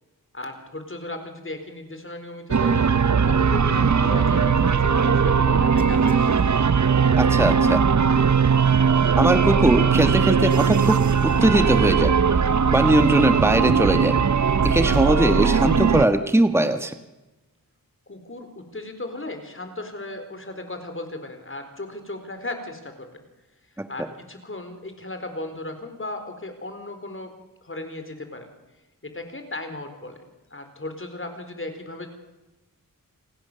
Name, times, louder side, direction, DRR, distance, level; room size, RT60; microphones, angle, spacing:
voice 1, 0.3-2.8 3.2-6.3 18.1-23.1 23.9-27.3 27.6-28.5 29.0-30.2 30.5-32.1, left 2 dB, 35° left, 7 dB, 4.4 m, -36 dB
sound 1, 2.5-16.0, right 6 dB, 55° right, 1.0 m, -19 dB
voice 2, 7.2-7.8 9.2-12.1 12.7-14.1 14.6-16.9 23.8-23.9, right 1 dB, 5° right, 8 dB, 1.3 m, -20 dB
29.0 x 20.0 x 6.9 m, 1.0 s
wide cardioid pair, 100°, 35 cm